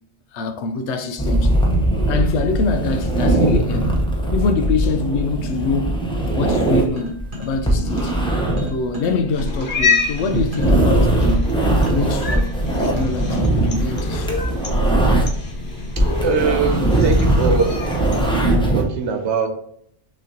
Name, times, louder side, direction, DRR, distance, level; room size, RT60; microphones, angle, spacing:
voice 1, 0.3-1.5 2.1-3.9 4.3-6.0 6.3-8.2 8.7-11.4 11.9-12.5 12.8-14.4, left 3 dB, 85° left, 0.9 m, -24 dB
sound 1, 1.2-15.5 15.8-18.9, right 1 dB, 5° left, 0.8 m, -20 dB
sound 2, 7.0-8.3 8.6-13.3, left 1 dB, 50° right, 1.4 m, -34 dB
Cat, 9.3-18.3, left 3 dB, 65° left, 1.4 m, -26 dB
voice 2, 16.0-17.8 18.7-19.5, right 5 dB, 85° right, 1.1 m, -22 dB
6.2 x 3.1 x 2.7 m
omnidirectional pair, 1.1 m